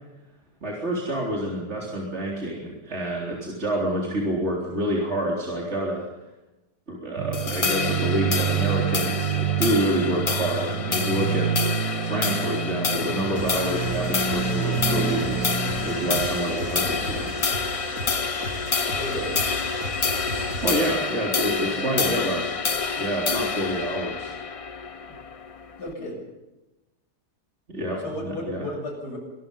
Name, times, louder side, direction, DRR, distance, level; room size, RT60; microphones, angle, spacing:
voice 1, 0.6-6.1 6.9-11.6 12.0-17.5 20.6-24.3 27.7-28.6, right 1 dB, 40° right, -3 dB, 4.1 m, -28 dB
sound 1, 7.2-16.3, right 8 dB, 80° right, 1.6 m, -28 dB
sound 2, 7.3-25.9, left 5 dB, 40° left, 0.5 m, -28 dB
sound 3, 13.3-20.9, right 1 dB, 65° right, 4.9 m, -35 dB
voice 2, 19.0-19.4 21.6-22.2 25.1-25.2 25.8-26.3 28.0-29.2, left 1 dB, 80° left, 2 dB, 7.7 m, -34 dB
25.5 x 21.0 x 5.5 m, 1.0 s
omnidirectional pair, 1.7 m